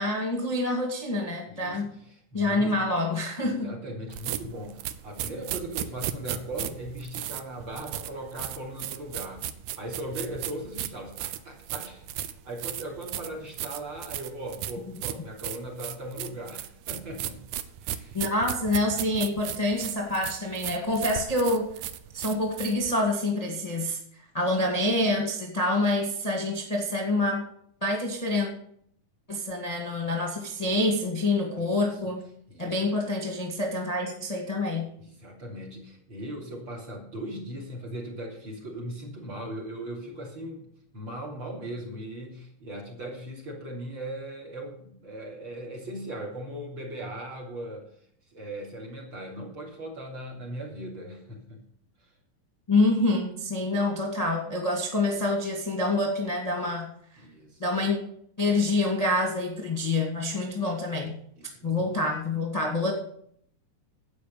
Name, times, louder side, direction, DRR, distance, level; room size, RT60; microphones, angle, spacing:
voice 1, 0.0-1.9 2.3-3.7 18.1-21.7 22.1-24.0 24.3-27.5 27.8-28.5 29.3-32.2 32.6-34.9 52.7-56.9 57.1-57.2 57.6-58.0 58.4-61.1 61.6-62.9, left 2 dB, 15° left, 0 dB, 1.5 m, -27 dB
voice 2, 1.5-1.8 2.3-2.8 3.5-9.4 9.8-17.4 17.8-18.2 31.6-31.9 32.5-32.9 35.0-40.6 40.9-47.9 48.3-51.6 52.0-52.1 57.2-57.6 61.4-62.0, right 1 dB, 35° right, -1 dB, 3.6 m, -39 dB
sound 1, 4.1-22.9, right 11 dB, 75° right, 2.1 m, -35 dB
11.5 x 8.8 x 6.9 m, 0.65 s
omnidirectional pair, 3.9 m